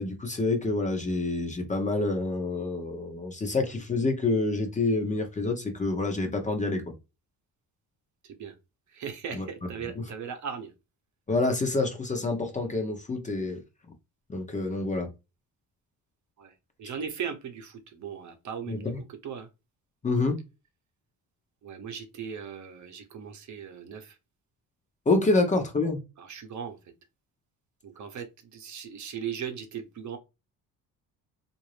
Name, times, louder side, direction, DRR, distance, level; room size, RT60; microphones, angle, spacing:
voice 1, 0.0-6.8 9.3-9.4 11.3-13.6 14.3-15.1 18.7-19.0 20.0-20.4 25.1-26.0, left 3 dB, 20° left, 0.8 m, -27 dB
voice 2, 8.2-8.5 8.9-10.7 16.4-16.5 16.8-19.5 21.6-24.2 25.3-25.4 26.2-26.8 27.8-28.3 28.5-30.2, right 7 dB, 50° right, 0.9 m, -38 dB
3.8 x 2.6 x 3.2 m
cardioid pair, 140°, 36 cm